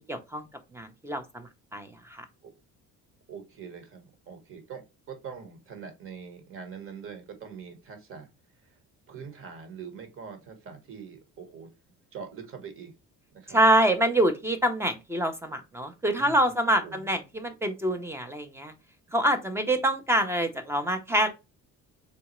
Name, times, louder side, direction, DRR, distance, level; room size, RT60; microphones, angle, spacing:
voice 1, 0.1-0.5 0.7-2.2 13.5-18.7 19.1-21.3, right 1 dB, 10° right, 8 dB, 0.6 m, -26 dB
voice 2, 3.3-8.3 8.6-8.8 9.1-11.7 12.1-12.9 13.3-13.6 16.2-16.4 16.8-17.1, right 6 dB, 40° right, 6 dB, 1.2 m, -43 dB
3.9 x 3.4 x 3.0 m, 0.25 s
cardioid pair, 160°, 32 cm